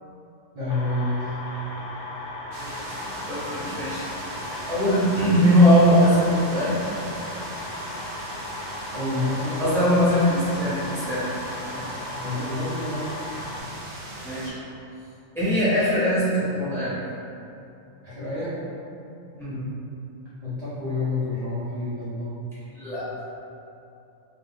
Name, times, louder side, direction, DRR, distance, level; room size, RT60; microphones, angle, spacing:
voice 1, 0.5-1.3 8.9-9.6 11.6-13.3 18.0-18.6 20.4-22.4, left 2 dB, 40° right, -12 dB, 0.6 m, -29 dB
sound 1, 0.7-13.6, left 2 dB, 65° left, 0.5 m, -36 dB
sound 2, 2.5-14.5, right 1 dB, 80° right, 1.0 m, -39 dB
voice 2, 3.1-4.1 4.7-6.8 9.6-11.2 14.2-14.5 15.3-16.9 19.4-19.6 22.7-23.1, equal, ahead, -12 dB, 1.0 m, -21 dB
2.5 x 2.5 x 3.4 m, 2.7 s
omnidirectional pair, 1.4 m